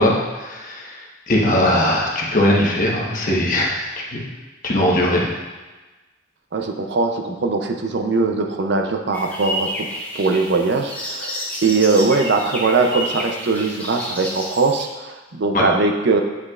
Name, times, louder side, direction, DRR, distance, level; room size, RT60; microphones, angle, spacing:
voice 1, 0.0-4.2 4.6-5.3 15.5-15.6, left 1 dB, 45° left, -2 dB, 1.1 m, -20 dB
voice 2, 6.5-9.9 10.1-16.2, right 3 dB, 60° right, 4 dB, 0.5 m, -20 dB
sound 1, 9.1-14.9, left 1 dB, 10° left, 0.8 m, -30 dB
8.2 x 5.3 x 2.4 m, 1.2 s
head